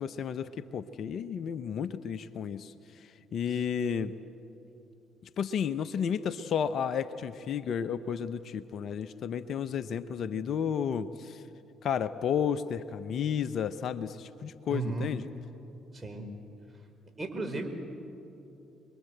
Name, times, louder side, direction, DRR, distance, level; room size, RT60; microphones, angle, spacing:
voice 1, 0.0-2.7 3.3-4.1 5.4-11.4 11.8-15.2, left 7 dB, 60° left, 13 dB, 0.9 m, -32 dB
voice 2, 14.7-15.1 15.9-16.3 17.2-17.7, right 3 dB, 25° right, 5 dB, 5.2 m, -34 dB
28.5 x 22.0 x 8.0 m, 2.8 s
hypercardioid pair, 55°, 0 cm